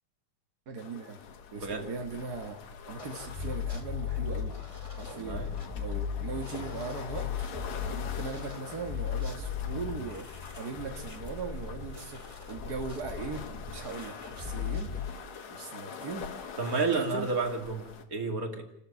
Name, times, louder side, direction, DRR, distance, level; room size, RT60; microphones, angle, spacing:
voice 1, 0.7-1.2 1.5-2.6 2.9-4.5 5.0-5.5 5.7-15.2 15.5-16.6 16.9-17.3, right 4 dB, 60° right, 4 dB, 1.0 m, -39 dB
sound 1, 0.8-18.0, left 7 dB, 55° left, 2.7 m, -45 dB
voice 2, 1.6-1.9 5.1-5.5 16.6-18.6, right 4 dB, 30° right, 4 dB, 2.4 m, -31 dB
sound 2, 3.0-15.1, left 7 dB, 20° left, 1.0 m, -37 dB
29.5 x 13.5 x 8.3 m, 0.77 s
omnidirectional pair, 4.1 m